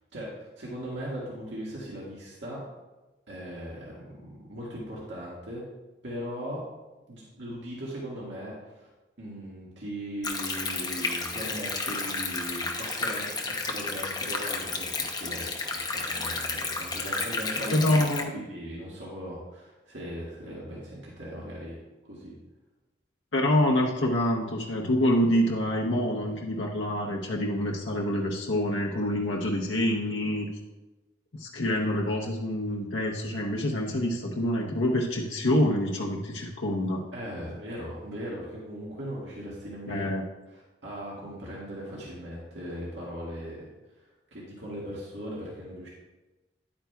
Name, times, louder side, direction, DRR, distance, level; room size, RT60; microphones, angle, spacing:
voice 1, 0.1-2.6 3.3-4.0 4.5-5.6 6.0-6.6 7.1-8.9 9.2-18.0 18.3-21.8 22.1-22.4 37.1-40.1 40.5-43.7 44.3-45.9, equal, 75° right, -6 dB, 1.8 m, -38 dB
Stream, 10.2-18.2, left 3 dB, 20° left, 0.7 m, -32 dB
voice 2, 17.7-18.3 23.3-30.5 31.3-37.0 39.9-40.2, left 1 dB, 85° left, -1 dB, 0.8 m, -26 dB
10.0 x 8.7 x 2.3 m, 1.1 s
head